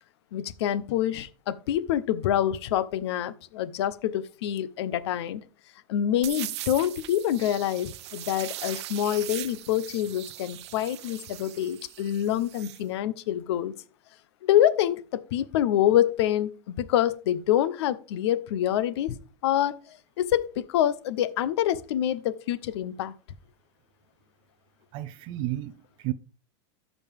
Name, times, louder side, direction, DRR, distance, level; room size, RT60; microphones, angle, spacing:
voice 1, 0.3-5.4 5.9-13.7 14.4-19.1 19.4-23.1, left 11 dB, 70° left, 0.8 m, -26 dB
sound 1, 6.2-12.8, right 14 dB, 80° right, 0.7 m, -40 dB
voice 2, 24.9-26.1, right 15 dB, 35° right, 0.4 m, -32 dB
13.5 x 5.3 x 3.5 m
supercardioid pair, 160°, 14 cm